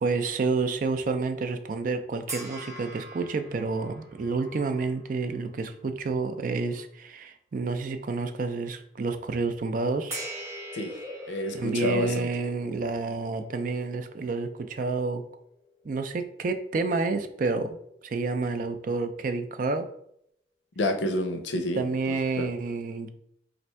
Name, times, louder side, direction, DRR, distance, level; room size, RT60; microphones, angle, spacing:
voice 1, 0.0-10.2 11.5-15.2 15.8-17.8 18.0-19.9 21.8-23.1, right 3 dB, 45° right, 8 dB, 0.4 m, -29 dB
sound 1, 2.3-5.8 6.3-6.5 10.1-16.5, right 1 dB, 15° right, 0.7 m, -43 dB
voice 2, 11.8-12.3 20.8-22.5, left 1 dB, 85° left, 6 dB, 0.6 m, -29 dB
3.2 x 2.5 x 4.3 m, 0.70 s
head